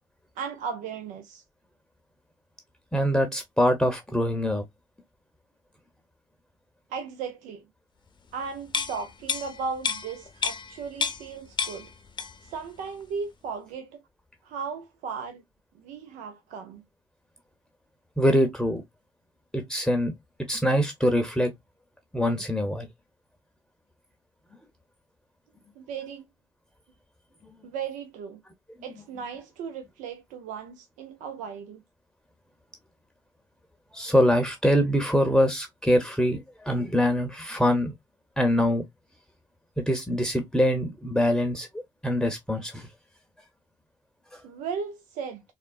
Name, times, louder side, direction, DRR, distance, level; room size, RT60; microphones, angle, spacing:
voice 1, 0.4-1.4 6.9-7.6 8.3-11.9 12.4-14.0 14.4-15.4 15.8-16.8 25.8-26.2 27.6-28.4 28.8-31.8 44.4-45.4, right 6 dB, 80° right, 0.5 m, -36 dB
voice 2, 2.9-4.6 18.2-18.8 19.5-20.1 20.5-21.5 22.1-22.9 33.9-37.9 38.4-38.8 39.8-42.9 44.3-44.4, equal, 5° left, 0.8 m, -24 dB
sound 1, 8.7-11.3 11.6-12.5 12.9-13.0, left 6 dB, 40° left, 0.7 m, -31 dB
3.6 x 2.1 x 2.3 m
supercardioid pair, 65°, 13 cm